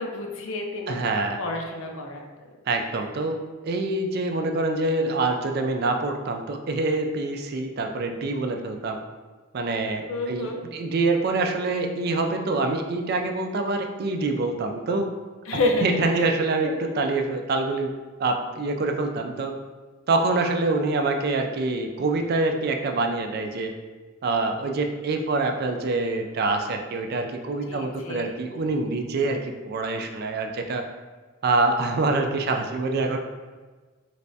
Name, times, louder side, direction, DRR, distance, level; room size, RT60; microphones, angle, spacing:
voice 1, 0.0-1.0 1.4-2.2 10.1-10.6 15.4-16.3 16.6-16.7 27.7-28.3, left 2 dB, 75° left, 2 dB, 0.6 m, -29 dB
voice 2, 0.9-1.4 2.7-3.4 3.6-9.0 9.5-15.1 15.5-17.9 18.2-19.5 20.1-23.7 24.2-30.8 31.4-33.2, right 3 dB, 50° right, 4 dB, 0.3 m, -25 dB
3.3 x 3.2 x 2.6 m, 1.3 s
head